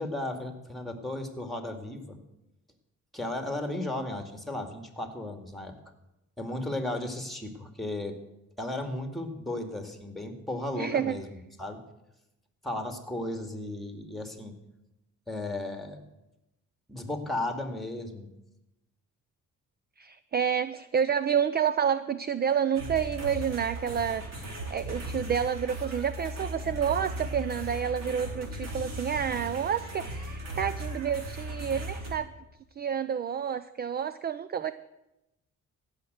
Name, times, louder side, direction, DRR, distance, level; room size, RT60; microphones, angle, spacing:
voice 1, 0.0-2.2 3.1-5.7 6.4-8.2 8.6-11.3 11.6-11.8 12.6-14.5 15.3-16.0 16.9-18.3, left 1 dB, ahead, 6 dB, 2.2 m, -35 dB
voice 2, 10.8-11.2 20.0-24.3 24.7-32.3 32.8-34.7, right 8 dB, 35° right, 14 dB, 0.5 m, -29 dB
sound 1, 22.7-32.1, equal, 60° right, 3.5 m, -37 dB
15.5 x 6.6 x 8.0 m, 0.92 s
cardioid pair, 90°, 30 cm